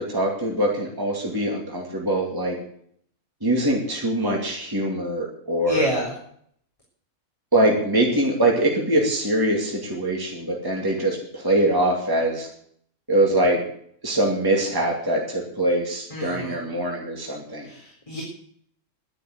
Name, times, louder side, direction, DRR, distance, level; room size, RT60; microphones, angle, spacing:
voice 1, 0.0-2.6 3.4-5.9 7.5-12.5 13.1-13.6 14.0-17.7, right 1 dB, 15° right, -1 dB, 2.6 m, -23 dB
voice 2, 5.7-6.1 16.1-16.6 17.6-18.2, equal, 20° left, -3 dB, 4.1 m, -28 dB
11.5 x 11.0 x 8.1 m, 0.65 s
omnidirectional pair, 1.5 m